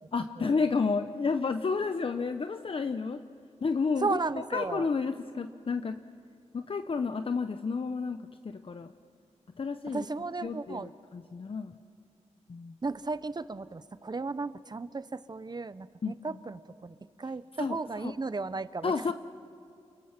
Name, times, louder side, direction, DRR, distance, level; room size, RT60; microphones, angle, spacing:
voice 1, 0.1-3.2 3.6-4.2 4.5-6.0 6.5-8.2 8.4-8.9 9.6-10.0 10.4-11.7 12.5-12.8 16.0-16.1 17.6-18.1 18.8-19.1, left 4 dB, 50° left, 8 dB, 0.8 m, -31 dB
voice 2, 4.0-4.9 9.9-10.9 12.8-19.1, right 3 dB, 35° right, 15 dB, 0.8 m, -35 dB
29.5 x 22.5 x 6.0 m, 2.4 s
cardioid pair, 65°, 12 cm